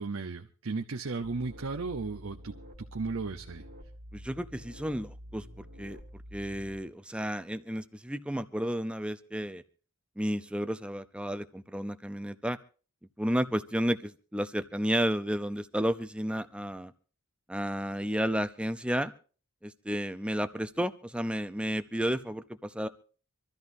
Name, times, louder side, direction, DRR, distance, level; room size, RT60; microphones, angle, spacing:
voice 1, 0.0-2.5 2.9-3.6, right 3 dB, 65° right, 5 dB, 0.7 m, -35 dB
sound 1, 1.2-6.8, equal, 50° right, 1.9 m, -48 dB
voice 2, 4.1-6.0 6.3-9.6 10.2-12.6 13.2-16.9 17.5-19.1 19.6-22.9, equal, 5° right, 10 dB, 0.6 m, -32 dB
26.0 x 13.5 x 2.7 m, 0.39 s
head